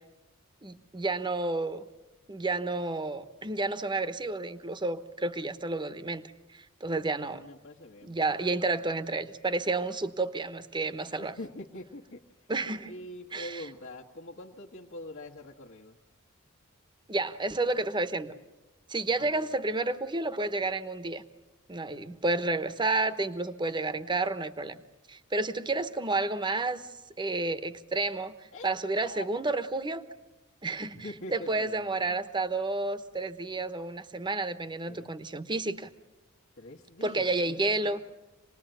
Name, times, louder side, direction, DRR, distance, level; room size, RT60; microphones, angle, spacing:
voice 1, 0.6-1.8 2.3-7.4 8.0-11.3 12.5-12.9 13.3-13.6 17.1-18.3 18.9-21.2 21.7-24.8 25.1-26.9 27.2-28.4 28.6-30.0 30.6-31.1 31.3-35.9 37.0-38.0, right 2 dB, 20° right, 12 dB, 1.0 m, -30 dB
voice 2, 7.1-8.2 11.2-12.2 12.8-16.0 19.2-19.5 25.6-25.7 28.5-28.7 29.0-29.4 31.0-32.0 34.9-35.1 36.6-38.0, left 1 dB, 60° left, -2 dB, 1.5 m, -44 dB
26.5 x 20.0 x 9.1 m, 1.1 s
head